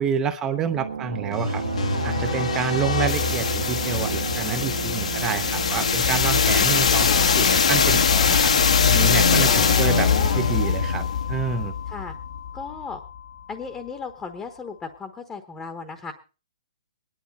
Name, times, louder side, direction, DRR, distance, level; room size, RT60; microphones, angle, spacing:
voice 1, 0.0-1.6 2.0-7.1 7.4-8.5 8.9-11.7, right 7 dB, 15° right, 9 dB, 0.7 m, -28 dB
sound 1, 0.7-6.6, right 6 dB, 80° right, 1.3 m, -31 dB
sound 2, 1.3-13.2, left 6 dB, 75° left, 1.6 m, -22 dB
voice 2, 7.0-7.4 9.5-10.5 11.9-12.2 12.5-13.0 13.5-16.1, left 5 dB, 10° left, 8 dB, 1.1 m, -35 dB
20.0 x 11.0 x 4.1 m, 0.34 s
hypercardioid pair, 165°, 4 cm